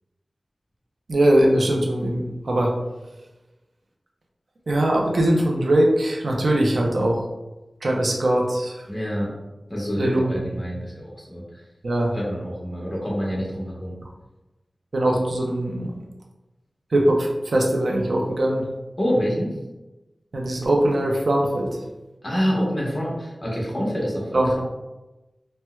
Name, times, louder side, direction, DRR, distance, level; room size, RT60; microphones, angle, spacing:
voice 1, 1.1-2.7 4.7-7.2 7.8-8.8 10.0-10.2 11.8-12.1 14.9-15.9 16.9-18.6 20.3-21.7 24.3-24.6, right 1 dB, 80° right, 0 dB, 0.5 m, -21 dB
voice 2, 8.9-9.3 9.7-11.6 12.1-14.0 19.0-19.6 22.2-24.6, equal, 30° left, -4 dB, 1.1 m, -27 dB
4.3 x 2.1 x 2.2 m, 1.1 s
wide cardioid pair, 70°, 0 cm